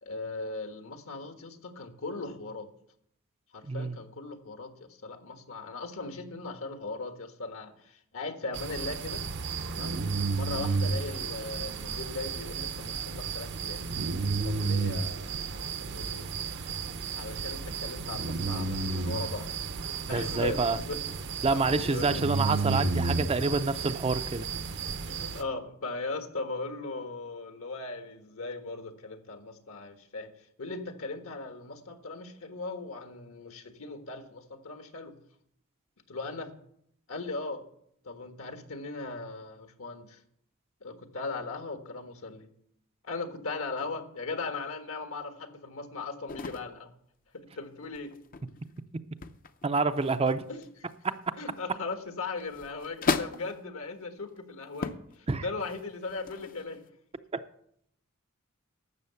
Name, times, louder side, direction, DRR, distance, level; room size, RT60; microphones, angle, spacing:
voice 1, 0.0-2.7 3.5-9.2 9.7-10.0 10.3-13.8 14.4-16.2 17.1-19.5 19.9-21.0 21.5-22.2 22.7-23.1 25.1-30.3 30.6-35.2 36.1-36.5 37.1-37.6 38.0-40.2 40.8-42.5 43.0-46.9 47.3-48.1 50.5-50.7 51.4-56.8, left 3 dB, 70° left, 1.5 m, -38 dB
voice 2, 3.6-4.0 20.1-20.8 21.4-24.5 49.6-50.4 51.0-51.2 55.3-55.5 57.3-57.4, right 3 dB, 30° right, 0.5 m, -27 dB
sound 1, 8.5-25.4, right 4 dB, 55° right, 0.8 m, -32 dB
sound 2, 46.3-46.8 47.8-48.8 49.2-49.7 49.9-51.6 52.2-53.7 54.3-54.4 54.7-55.1 55.5-56.9, left 4 dB, 40° left, 0.6 m, -35 dB
12.0 x 7.5 x 7.0 m
head